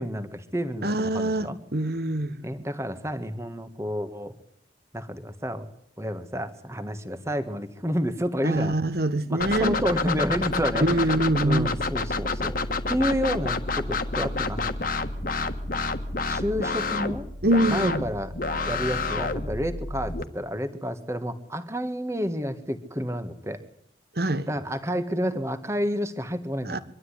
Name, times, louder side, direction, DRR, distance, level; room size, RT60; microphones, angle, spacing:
voice 1, 0.0-1.6 2.4-4.3 4.9-5.7 6.0-8.7 9.3-11.1 11.4-14.7 16.3-17.3 17.7-18.3 18.6-23.6 24.5-26.8, equal, 15° right, 1.6 m, -30 dB
voice 2, 0.8-2.4 8.4-9.8 10.8-11.7 17.4-18.0 24.2-24.5 26.7-26.8, right 1 dB, 55° right, 1.4 m, -24 dB
sound 1, 9.4-20.2, left 3 dB, 50° left, 1.5 m, -29 dB
24.5 x 12.5 x 9.9 m
head